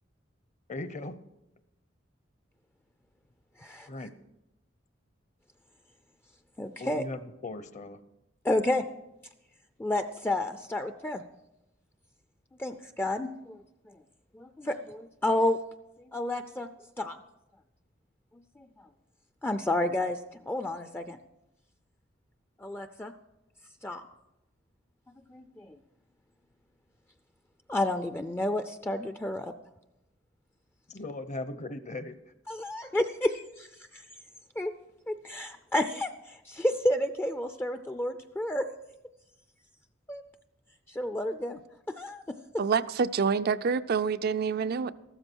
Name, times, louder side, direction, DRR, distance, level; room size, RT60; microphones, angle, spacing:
voice 1, 0.7-1.2 3.9-4.1 6.8-8.0 30.9-32.2, left 2 dB, 40° left, 0.7 m, -38 dB
voice 2, 6.6-7.0 8.4-8.8 9.8-11.2 12.6-14.0 14.3-15.6 16.1-16.7 17.0-17.2 18.6-18.7 19.4-20.2 20.5-21.2 22.6-23.1 23.8-24.0 25.3-25.8 27.7-29.5 32.5-33.7 33.9-34.0 34.6-34.7 35.1-38.6 40.1-40.2 40.9-41.6 42.0-42.2, left 1 dB, 10° left, 0.4 m, -30 dB
voice 3, 42.6-44.9, right 5 dB, 55° right, 0.4 m, -27 dB
14.0 x 13.0 x 4.5 m
head